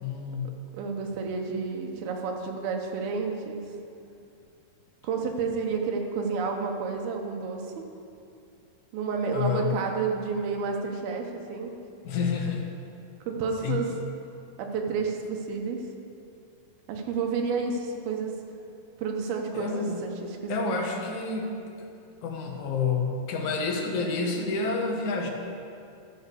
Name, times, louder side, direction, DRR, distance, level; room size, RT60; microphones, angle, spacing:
voice 1, 0.0-0.6 9.3-9.8 12.0-12.7 13.6-13.9 19.5-20.0 20.5-21.9 22.2-25.3, left 4 dB, 65° left, 1 dB, 2.1 m, -29 dB
voice 2, 0.7-3.6 5.0-7.6 8.9-11.7 13.3-13.9 14.6-15.8 16.9-18.4 19.0-20.1 20.4-20.7, right 5 dB, 80° right, 2 dB, 2.9 m, -30 dB
12.0 x 6.8 x 6.7 m, 2.5 s
omnidirectional pair, 4.3 m